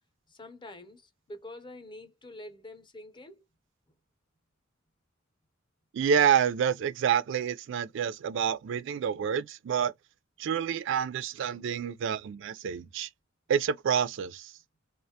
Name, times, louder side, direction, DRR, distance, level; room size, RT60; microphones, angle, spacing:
voice 1, 0.3-3.4, left 1 dB, 25° left, 0.6 m, -46 dB
voice 2, 5.9-9.9 10.4-13.1 13.5-14.5, right 7 dB, 65° right, 0.3 m, -28 dB
2.4 x 2.2 x 2.7 m
head